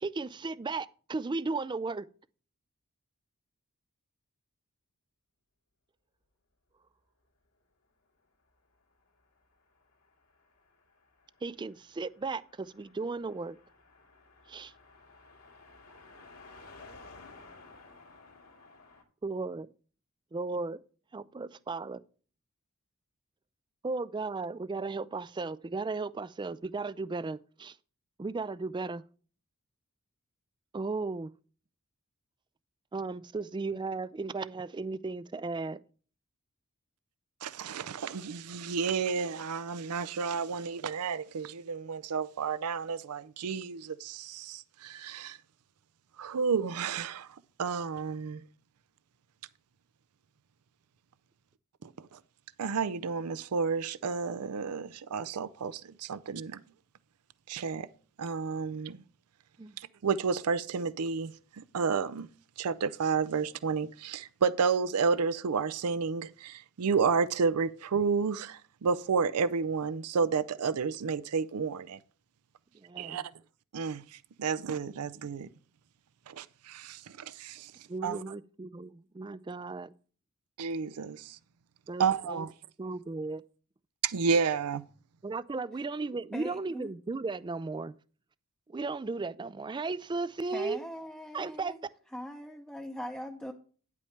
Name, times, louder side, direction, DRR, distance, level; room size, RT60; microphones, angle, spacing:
voice 1, 0.0-2.1 11.4-13.6 14.5-14.7 19.2-19.7 20.3-20.8 21.1-22.0 23.8-27.8 28.2-29.0 30.7-31.3 32.9-35.8 37.7-37.8 59.6-59.7 72.8-73.2 77.9-79.9 81.9-82.5 82.8-83.4 85.2-87.9 88.7-90.8 91.3-91.7, right 3 dB, 20° right, 0.3 m, -35 dB
Car passing by, 8.9-19.0, left 3 dB, 75° left, 2.2 m, -55 dB
voice 2, 37.4-45.4 46.2-47.3 47.6-48.4 52.6-56.6 57.5-57.9 58.2-59.0 60.0-62.3 62.6-72.0 73.0-73.2 73.7-74.0 74.4-75.5 76.3-77.0 77.3-77.7 78.0-78.2 80.6-81.4 82.0-82.5 84.0-84.8, right 5 dB, 90° right, 0.5 m, -31 dB
voice 3, 86.3-86.9 90.5-91.8 92.1-93.5, equal, 5° left, 0.7 m, -41 dB
9.8 x 8.4 x 3.3 m
head